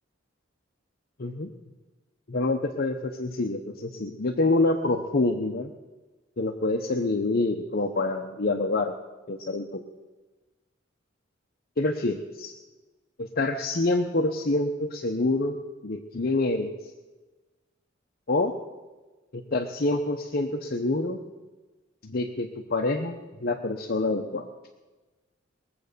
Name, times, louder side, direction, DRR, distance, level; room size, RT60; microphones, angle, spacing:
voice 1, 1.2-1.5 2.3-5.7 6.4-8.9 9.3-9.8 11.8-12.5 13.2-15.6 15.8-16.7 18.3-18.5 19.3-21.2 22.0-24.5, left 2 dB, 50° left, 3 dB, 0.9 m, -26 dB
21.5 x 7.8 x 6.7 m, 1.2 s
head